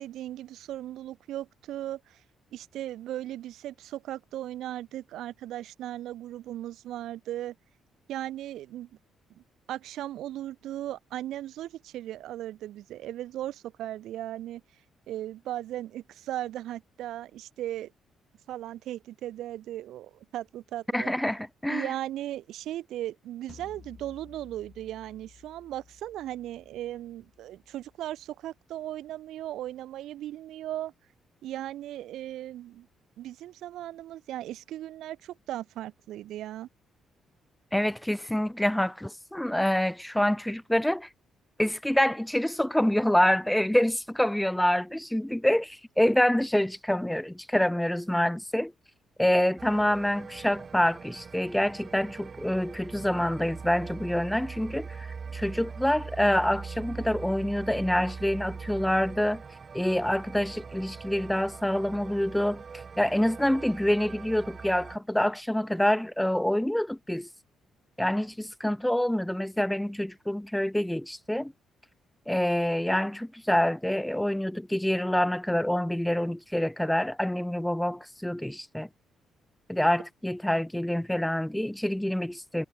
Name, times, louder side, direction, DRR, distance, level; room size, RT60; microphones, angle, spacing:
voice 1, 0.0-2.2 2.5-7.6 8.1-8.9 9.4-14.6 15.1-17.9 18.5-21.1 21.7-30.9 31.4-32.9 33.2-36.7, right 13 dB, 80° right, 3.5 m, -37 dB
voice 2, 20.9-21.9 37.7-41.1 41.6-48.7 49.2-55.1 55.3-59.4 59.7-62.6 63.0-67.3 68.0-71.5 72.3-78.9 79.7-82.6, left 1 dB, 5° left, 0.7 m, -26 dB
sound 1, 23.5-28.6, left 6 dB, 40° left, 7.2 m, -55 dB
sound 2, 49.6-65.0, right 5 dB, 40° right, 0.6 m, -42 dB
cardioid pair, 90°, 0 cm